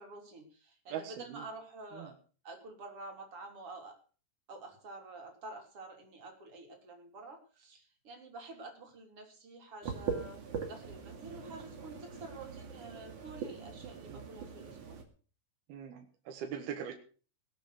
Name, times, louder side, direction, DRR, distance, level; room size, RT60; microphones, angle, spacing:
voice 1, 0.0-2.1 2.4-4.0 4.5-15.0, right 2 dB, 35° right, 3 dB, 3.8 m, -49 dB
voice 2, 0.9-1.4 2.0-2.1 14.0-14.2 15.7-16.9, right 8 dB, 65° right, 3 dB, 3.3 m, -41 dB
sound 1, 9.8-15.0, right 6 dB, 50° right, 3.5 m, -42 dB
19.5 x 8.2 x 6.5 m, 0.39 s
omnidirectional pair, 5.0 m